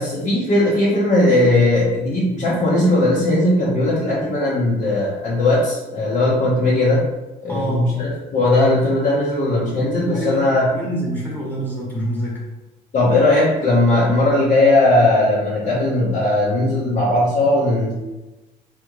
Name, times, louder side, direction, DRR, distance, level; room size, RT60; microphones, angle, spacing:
voice 1, 0.0-7.0 7.4-10.7 12.9-17.9, left 2 dB, 50° left, -8 dB, 1.2 m, -18 dB
voice 2, 7.5-7.9 10.1-12.5, right 1 dB, 10° left, -6 dB, 1.5 m, -27 dB
3.7 x 3.4 x 3.2 m, 1.1 s
cardioid pair, 110°, 17 cm